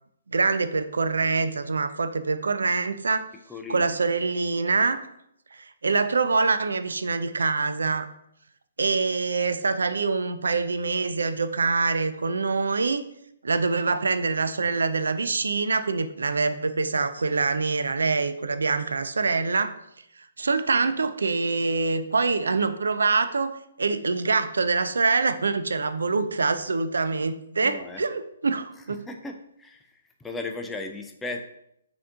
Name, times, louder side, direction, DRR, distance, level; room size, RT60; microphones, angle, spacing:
voice 1, 0.3-3.2 3.7-5.0 5.6-8.1 8.8-13.1 13.4-19.8 20.4-29.0, right 4 dB, 70° right, 11 dB, 0.3 m, -25 dB
voice 2, 3.5-3.9 27.6-28.0 29.1-31.4, left 3 dB, 10° left, 4 dB, 0.4 m, -36 dB
4.1 x 2.8 x 3.6 m, 0.76 s
figure-of-eight pair, 135°, 0 cm